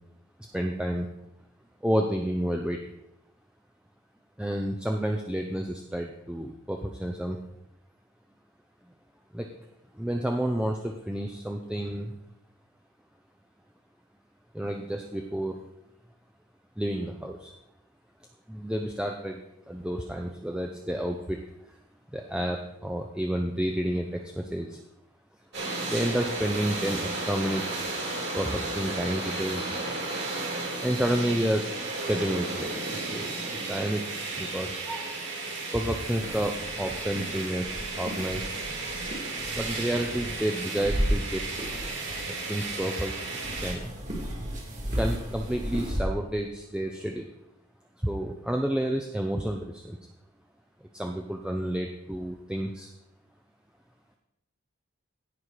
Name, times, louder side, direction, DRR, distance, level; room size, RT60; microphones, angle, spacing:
voice 1, 0.5-1.1 1.8-2.8 4.4-7.4 9.3-9.5 9.9-12.1 14.5-15.6 16.8-17.5 18.5-21.4 22.1-24.8 25.9-27.8 28.3-29.8 30.8-31.6 32.1-34.0 34.4-35.1 35.7-38.5 39.5-41.4 42.3-43.1 43.6-43.9 45.0-47.3 48.0-50.0 50.9-52.9, equal, 5° right, 2 dB, 0.6 m, -30 dB
sound 1, 25.5-43.7, right 3 dB, 50° right, 3.5 m, -34 dB
sound 2, 35.8-46.0, equal, 35° right, 2.2 m, -35 dB
16.5 x 5.6 x 4.8 m, 0.83 s
head